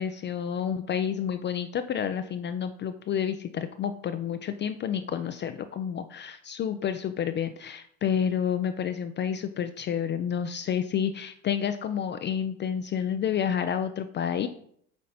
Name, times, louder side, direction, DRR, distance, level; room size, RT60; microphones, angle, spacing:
voice 1, 0.0-14.5, left 8 dB, 30° left, 9 dB, 0.4 m, -29 dB
7.6 x 4.1 x 4.1 m, 0.66 s
hypercardioid pair, 70°, 42 cm